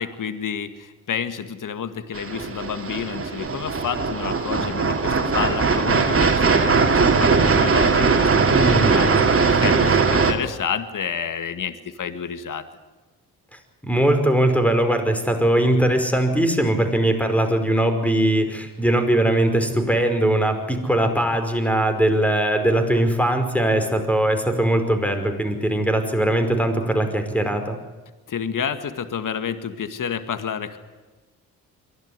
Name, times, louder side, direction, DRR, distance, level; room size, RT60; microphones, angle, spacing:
voice 1, 0.0-6.8 7.2-12.6 28.3-30.8, left 7 dB, 50° left, 11 dB, 2.0 m, -30 dB
sound 1, 2.1-10.3, right 4 dB, 35° right, 3.1 m, -19 dB
voice 2, 8.5-9.2 13.8-27.8, right 1 dB, 5° left, 7 dB, 5.1 m, -20 dB
23.0 x 16.5 x 9.8 m, 1.3 s
hypercardioid pair, 50°, 40 cm